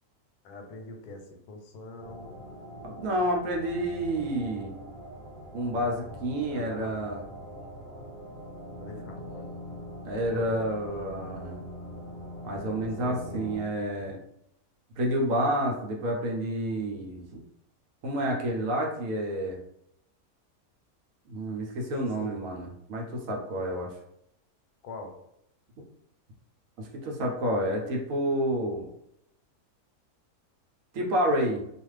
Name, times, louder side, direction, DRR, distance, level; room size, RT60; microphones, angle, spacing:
voice 1, 0.4-2.3 6.5-7.0 8.7-9.5 10.3-10.6 13.0-13.4 21.9-22.4 24.8-25.1, left 2 dB, 90° left, 4 dB, 1.1 m, -42 dB
sound 1, 2.0-13.6, equal, 45° right, 0.8 m, -42 dB
voice 2, 2.8-4.8 5.5-7.2 10.0-11.6 12.4-14.2 15.0-17.2 18.0-19.6 21.3-23.9 26.8-28.9 30.9-31.6, right 1 dB, 70° right, 0 dB, 1.0 m, -29 dB
2.5 x 2.4 x 3.1 m, 0.77 s
omnidirectional pair, 1.6 m